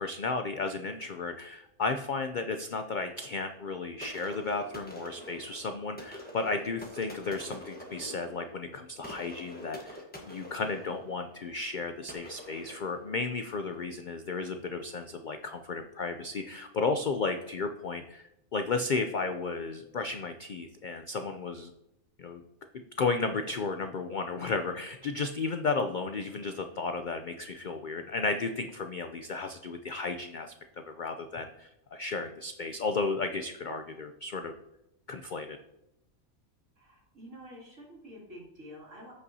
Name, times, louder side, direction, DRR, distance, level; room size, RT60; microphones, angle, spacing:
voice 1, 0.0-10.0 10.3-21.7 22.2-22.4 22.7-34.5 35.1-35.6, left 3 dB, 80° left, 7 dB, 0.4 m, -33 dB
sound 1, 4.0-13.7, left 1 dB, 5° left, 1.1 m, -46 dB
voice 2, 36.8-39.1, equal, 60° right, -4 dB, 2.8 m, -48 dB
14.5 x 5.5 x 2.7 m, 0.85 s
omnidirectional pair, 1.5 m